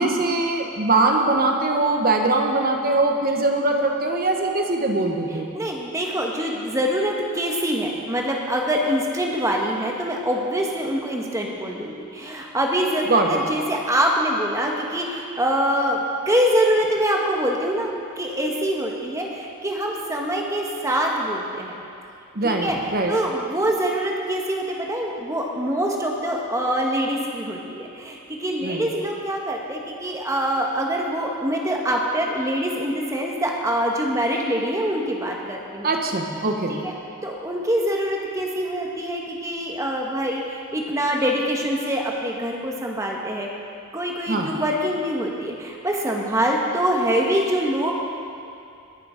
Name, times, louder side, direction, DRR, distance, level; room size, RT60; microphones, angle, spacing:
voice 1, 0.0-5.5 13.1-13.4 22.3-23.1 28.6-28.9 35.8-36.8 44.3-44.5, right 2 dB, 40° right, 3 dB, 1.1 m, -22 dB
voice 2, 5.3-21.7 22.4-22.8 23.1-35.9 36.7-36.9 37.2-43.5 43.9-47.9, equal, 15° right, 0 dB, 1.2 m, -24 dB
20.5 x 6.9 x 5.1 m, 2.6 s
head